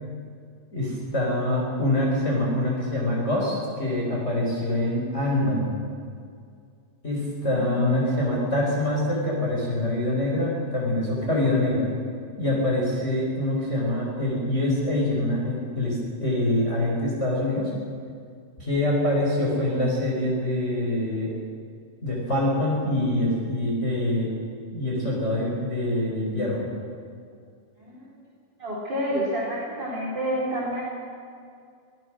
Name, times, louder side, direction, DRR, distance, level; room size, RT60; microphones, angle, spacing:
voice 1, 0.7-5.7 7.0-11.9 12.4-17.7 18.6-21.3 22.0-24.3 24.7-26.7, left 1 dB, 20° left, -4 dB, 4.8 m, -25 dB
voice 2, 7.4-8.1 27.9-28.1 28.6-30.8, equal, 30° right, -5 dB, 4.6 m, -29 dB
26.0 x 18.5 x 6.3 m, 2.3 s
omnidirectional pair, 4.0 m